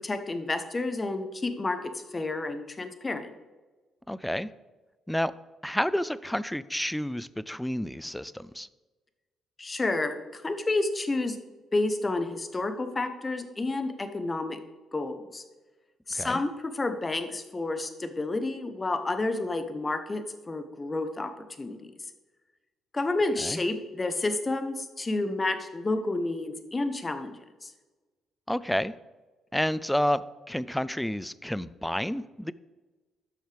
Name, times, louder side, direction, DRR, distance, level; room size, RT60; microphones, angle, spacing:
voice 1, 0.0-3.3 9.6-11.4 11.7-14.6 14.9-15.4 16.1-21.3 21.6-21.9 22.9-27.7, left 2 dB, 25° left, 8 dB, 0.9 m, -30 dB
voice 2, 4.1-4.5 5.1-5.3 5.6-8.7 16.1-16.4 23.4-23.6 28.5-28.9 29.5-32.5, equal, 5° left, 18 dB, 0.3 m, -30 dB
11.5 x 6.4 x 3.4 m, 1.2 s
cardioid pair, 90°, 0 cm